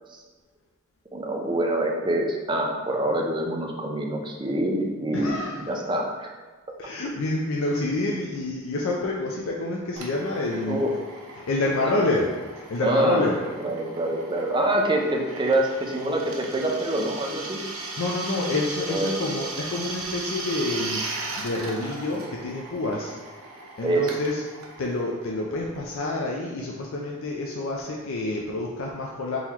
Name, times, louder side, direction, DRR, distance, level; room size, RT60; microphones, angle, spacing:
voice 1, 1.1-6.3 10.6-10.9 11.9-12.1 12.8-13.3 13.6-17.6 18.9-19.2 23.8-24.1, right 1 dB, 20° right, 1 dB, 0.5 m, -25 dB
voice 2, 5.1-5.7 6.8-10.8 11.5-12.3 12.6-13.4 18.0-21.0 21.4-23.2 23.8-24.4 24.8-29.4, left 2 dB, 70° left, -2 dB, 0.5 m, -28 dB
Drill, 10.0-26.3, right 2 dB, 90° right, 0.7 m, -37 dB
3.9 x 2.9 x 4.3 m, 1.3 s
head